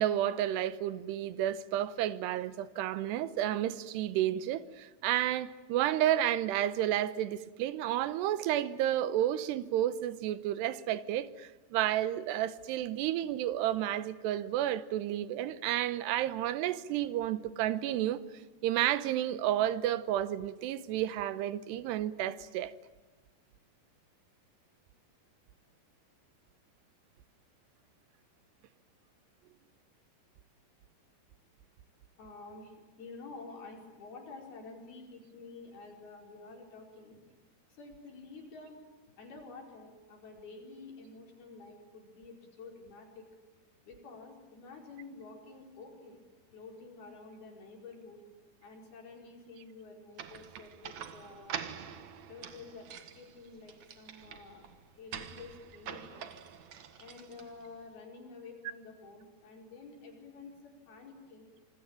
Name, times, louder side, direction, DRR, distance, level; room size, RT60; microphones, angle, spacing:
voice 1, 0.0-18.2 18.6-22.7, right 12 dB, 85° right, 3.1 m, -31 dB
voice 2, 32.2-37.2 37.7-38.8 39.2-43.3 43.8-46.2 46.5-48.2 48.6-51.7 52.3-52.9 53.1-56.3 57.0-61.5, left 3 dB, 65° left, 6.8 m, -50 dB
sound 1, 50.2-57.8, right 8 dB, 55° right, 2.3 m, -45 dB
26.5 x 22.5 x 9.0 m
omnidirectional pair, 4.7 m